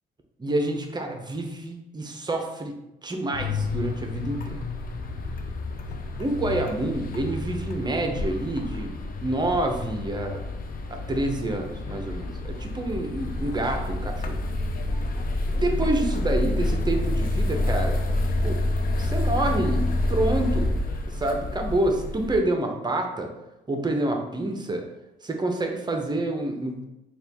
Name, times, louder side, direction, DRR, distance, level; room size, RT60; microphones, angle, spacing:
voice 1, 0.4-4.7 6.2-8.9 9.2-10.5 10.9-14.4 15.5-18.0 18.4-18.6 19.0-20.7 21.0-23.3 23.7-24.8 25.2-26.8, right 2 dB, 20° right, 3 dB, 0.6 m, -28 dB
sound 1, 3.3-22.4, left 2 dB, 45° left, 0.5 m, -28 dB
4.3 x 2.4 x 3.4 m, 0.92 s
cardioid pair, 90°, 20 cm